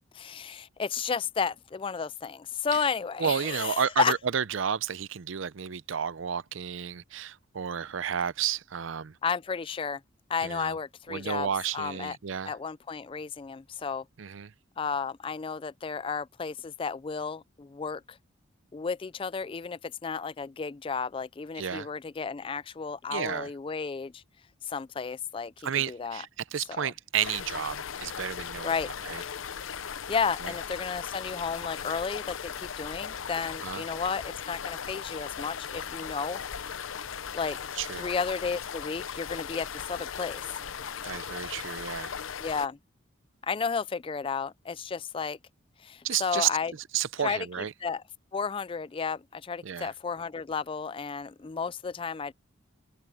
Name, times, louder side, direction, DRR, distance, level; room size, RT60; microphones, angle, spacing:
voice 1, 0.1-4.1 9.2-10.0 10.3-11.5 11.7-12.2 12.5-14.1 14.8-18.2 18.7-24.2 24.6-26.2 26.7-26.9 28.6-28.9 30.1-36.4 37.3-37.6 38.0-40.5 42.4-42.8 43.4-45.4 45.8-46.7 47.2-47.5 47.8-48.0 48.3-52.3, left 5 dB, 25° left, 0.3 m, -32 dB
voice 2, 3.2-9.2 10.4-10.8 11.1-12.5 14.2-14.5 21.6-21.9 23.1-23.5 25.6-28.7 29.0-29.2 30.4-30.5 33.6-33.8 37.8-38.1 41.0-42.2 46.0-46.5 46.9-47.7 49.6-49.9, right 8 dB, 70° right, 0.5 m, -31 dB
sound 1, 27.2-42.7, left 7 dB, 75° left, 0.7 m, -38 dB
head